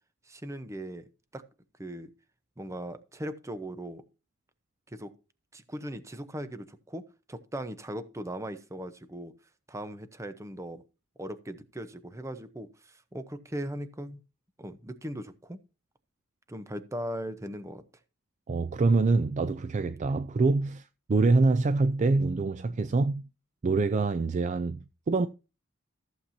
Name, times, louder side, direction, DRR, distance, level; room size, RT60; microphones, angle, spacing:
voice 1, 0.3-1.1 1.3-1.4 1.8-2.1 2.6-4.0 4.9-5.1 5.5-7.0 7.3-9.3 9.7-10.8 11.2-14.2 14.6-15.6 16.5-17.8, right 1 dB, 15° right, 0.8 m, -39 dB
voice 2, 18.5-23.3 23.6-25.3, right 3 dB, 35° right, 0.3 m, -25 dB
14.5 x 7.3 x 2.7 m
head